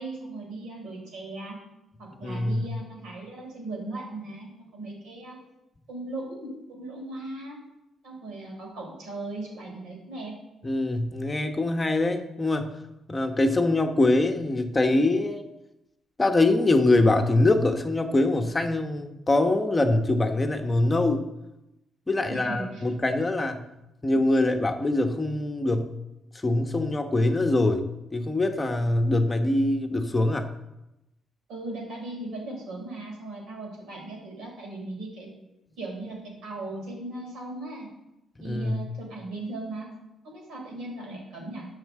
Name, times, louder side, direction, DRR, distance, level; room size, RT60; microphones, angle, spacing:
voice 1, 0.0-1.6 2.0-5.4 5.9-7.6 8.0-10.3 22.3-22.8 31.5-35.3 35.8-36.2 36.4-37.9 38.4-39.9 40.2-41.7, right 2 dB, 80° right, 0 dB, 4.2 m, -38 dB
voice 2, 2.2-2.6 10.6-12.7 13.1-15.5 16.2-21.3 22.1-23.6 24.0-25.9 26.3-30.5 38.4-38.8, left 2 dB, 20° left, 5 dB, 1.0 m, -23 dB
9.2 x 5.7 x 7.4 m, 0.93 s
cardioid pair, 90°, 0 cm